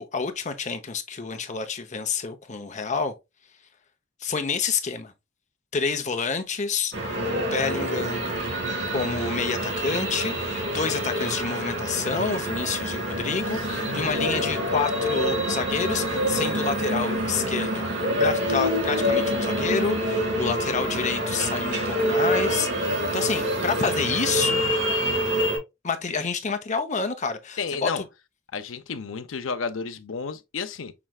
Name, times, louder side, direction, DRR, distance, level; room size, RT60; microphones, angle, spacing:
voice 1, 0.0-3.1 4.2-5.1 5.7-8.3 8.9-17.9 18.1-24.6 25.8-28.0, left 5 dB, 35° left, 0.8 m, -28 dB
sound 1, 6.9-25.6, equal, 65° right, 2.5 m, -26 dB
voice 2, 13.5-14.0 27.6-28.0 28.5-30.9, left 5 dB, 80° left, 0.7 m, -32 dB
6.0 x 3.2 x 2.3 m
head